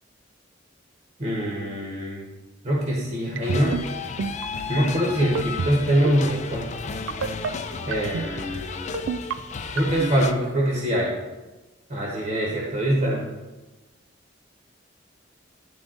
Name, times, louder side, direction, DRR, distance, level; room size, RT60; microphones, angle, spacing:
voice 1, 1.2-2.2 2.6-3.8 4.7-6.7 7.9-8.8 9.7-11.1 11.9-13.2, equal, 45° right, -3 dB, 1.2 m, -24 dB
sound 1, 3.4-10.3, left 5 dB, 40° left, 0.4 m, -33 dB
sound 2, 3.4-3.8 4.2-4.5 5.2-5.7 6.0-6.3 7.1-7.5 7.9-8.3 8.9-9.3 9.8-10.1, right 6 dB, 90° right, 0.3 m, -27 dB
10.5 x 3.5 x 3.9 m, 1.1 s
head